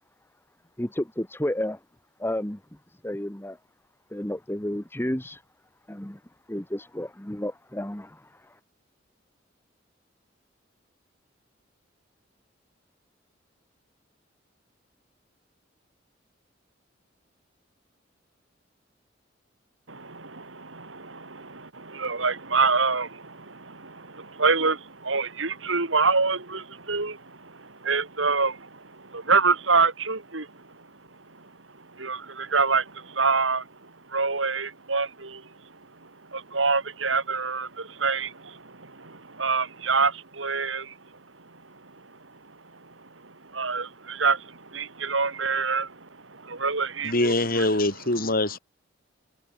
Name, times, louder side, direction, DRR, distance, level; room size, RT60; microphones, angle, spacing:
voice 1, 0.8-1.8 2.2-2.6 3.0-3.6 4.1-5.4 5.9-6.2 6.5-8.2, left 1 dB, 10° left, 1.6 m, -31 dB
voice 2, 19.9-30.6 31.4-31.5 31.9-35.5 36.0-41.0 41.7-41.9 42.8-47.7, right 4 dB, 85° right, 3.4 m, -27 dB
voice 3, 47.0-48.6, left 2 dB, 50° left, 6.4 m, -24 dB
head